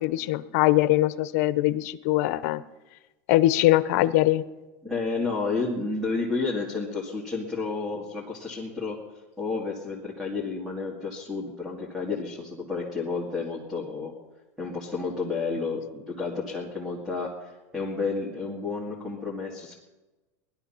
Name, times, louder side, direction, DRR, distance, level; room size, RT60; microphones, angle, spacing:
voice 1, 0.0-2.6 3.3-4.4, left 16 dB, 60° left, 14 dB, 0.8 m, -22 dB
voice 2, 4.8-9.0 9.4-14.1 14.6-19.8, left 4 dB, 5° right, -2 dB, 2.1 m, -31 dB
19.5 x 12.0 x 5.7 m, 1.1 s
supercardioid pair, 170°, 9 cm